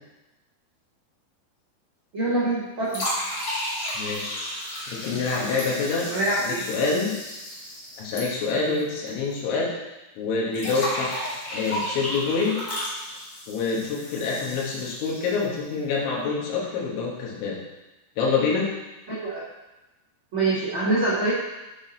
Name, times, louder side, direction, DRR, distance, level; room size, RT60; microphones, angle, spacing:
voice 1, 2.1-3.1 6.1-6.6 19.1-19.4 20.3-21.3, right 2 dB, 75° right, -10 dB, 1.2 m, -25 dB
sound 1, 2.9-9.1 9.3-9.4 10.5-15.6, equal, 40° left, 1.7 m, -33 dB
voice 2, 4.0-4.4 4.9-6.1 6.4-7.2 8.0-9.8 10.2-12.6 13.5-17.6 18.2-18.7, left 4 dB, 85° left, -3 dB, 3.6 m, -26 dB
8.0 x 4.2 x 3.9 m, 1.0 s
omnidirectional pair, 5.2 m